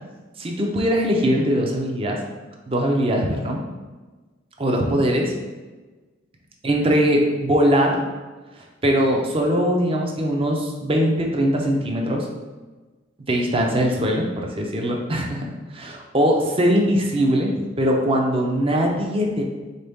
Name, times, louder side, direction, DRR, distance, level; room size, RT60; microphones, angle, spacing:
voice 1, 0.4-2.2 2.7-3.6 4.6-5.3 6.6-8.0 8.5-12.3 13.3-19.4, equal, 30° right, 1 dB, 0.6 m, -21 dB
4.1 x 3.7 x 3.5 m, 1.3 s
head